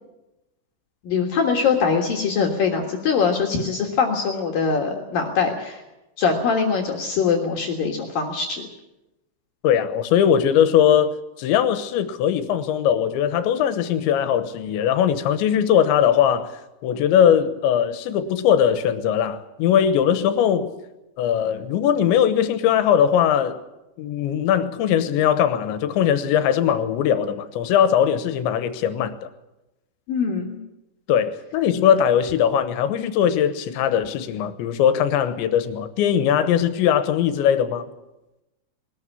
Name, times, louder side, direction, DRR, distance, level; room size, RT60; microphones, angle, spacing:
voice 1, 1.0-5.8 6.2-8.7 30.1-30.6, left 5 dB, 60° left, 3.0 m, -22 dB
voice 2, 9.6-16.5 16.8-20.7 21.2-23.6 24.0-29.1 31.1-37.9, left 9 dB, 85° left, 3.3 m, -20 dB
20.5 x 13.5 x 9.7 m
omnidirectional pair, 5.3 m